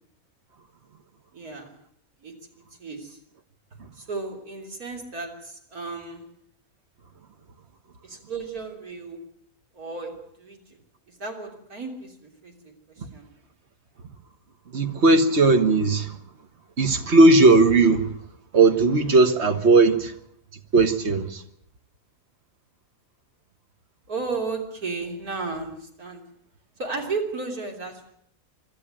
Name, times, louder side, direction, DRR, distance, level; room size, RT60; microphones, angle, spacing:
voice 1, 1.3-1.7 2.2-3.2 3.9-6.2 8.0-9.2 9.7-10.8 11.1-13.3 24.1-26.2 26.8-28.1, right 4 dB, 90° right, 3.9 m, -34 dB
voice 2, 14.7-16.2 16.8-18.1 18.5-20.1 20.7-21.4, right 3 dB, 50° right, 1.7 m, -17 dB
24.5 x 13.0 x 9.1 m
omnidirectional pair, 1.5 m